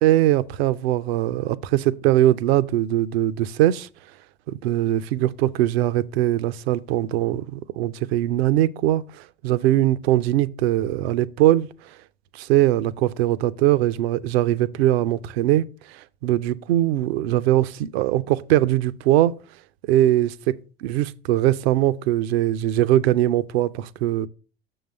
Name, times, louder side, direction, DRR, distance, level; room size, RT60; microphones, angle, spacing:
voice 1, 0.0-3.9 4.5-11.7 12.3-19.4 19.9-24.3, right 14 dB, 75° right, 0.5 m, -21 dB
6.7 x 3.9 x 6.3 m
hypercardioid pair, 75°, 32 cm